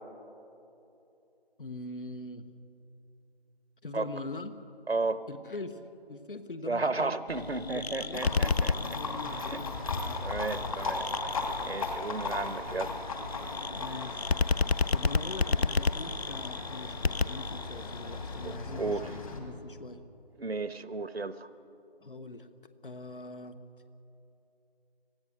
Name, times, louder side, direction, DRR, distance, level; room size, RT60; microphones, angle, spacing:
voice 1, 1.6-2.4 3.8-4.6 5.3-5.8 6.1-7.4 7.7-9.7 13.7-14.3 14.9-20.0 22.0-22.5 22.8-23.6, left 3 dB, 60° left, 10 dB, 1.4 m, -42 dB
voice 2, 4.9-5.2 6.7-8.7 9.5-9.6 10.2-11.1 11.6-12.9 18.4-19.1 20.4-21.4, right 3 dB, 85° right, 13 dB, 1.1 m, -33 dB
sound 1, 7.3-18.6, left 4 dB, 85° left, 0.7 m, -32 dB
Livestock farm animals working animals, 8.1-19.4, left 3 dB, 35° left, 2.5 m, -37 dB
25.5 x 16.5 x 6.4 m, 2.8 s
figure-of-eight pair, 160°, 30 cm